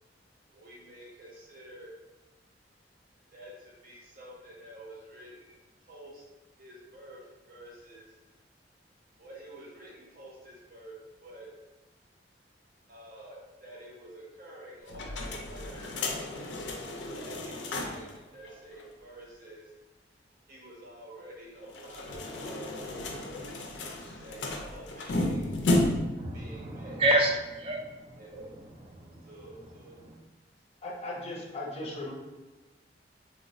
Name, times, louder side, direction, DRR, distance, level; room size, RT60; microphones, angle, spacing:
voice 1, 0.5-1.9 3.3-6.3 6.6-7.2 7.5-8.2 9.2-10.9 11.2-11.5 12.9-15.9 17.2-19.7 20.5-22.8 24.2-25.5 26.3-27.0 28.2-28.5 29.3-30.0, right 1 dB, 50° right, -3 dB, 0.7 m, -48 dB
sound 1, 14.9-18.1 18.4-18.5 18.8-18.9 21.6-26.2, left 1 dB, 85° left, 0.4 m, -32 dB
voice 2, 26.2-28.2 28.9-29.3 30.0-30.2, right 1 dB, 30° right, 1 dB, 0.3 m, -29 dB
voice 3, 30.8-32.1, left 2 dB, 35° left, -3 dB, 0.5 m, -37 dB
3.1 x 2.0 x 2.6 m, 1.1 s
head